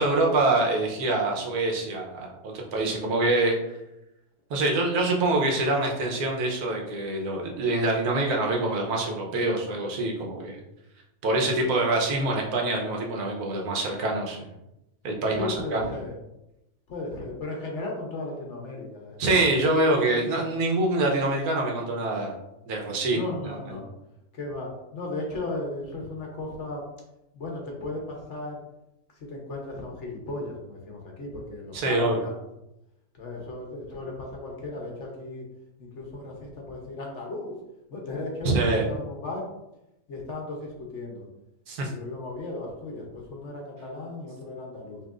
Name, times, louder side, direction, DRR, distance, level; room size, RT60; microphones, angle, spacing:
voice 1, 0.0-3.5 4.5-10.6 11.2-14.4 15.0-15.8 19.2-22.3 22.7-23.3 31.7-32.2 38.4-38.8 41.7-41.9, right 2 dB, 90° right, 0 dB, 1.4 m, -25 dB
voice 2, 15.3-16.1 16.9-19.5 23.1-23.9 24.3-26.8 27.3-28.6 29.1-32.3 33.1-35.4 35.8-37.5 37.9-39.5 40.1-41.3 41.9-45.0, left 2 dB, 55° left, 0 dB, 1.2 m, -36 dB
5.6 x 3.0 x 2.5 m, 0.89 s
omnidirectional pair, 1.5 m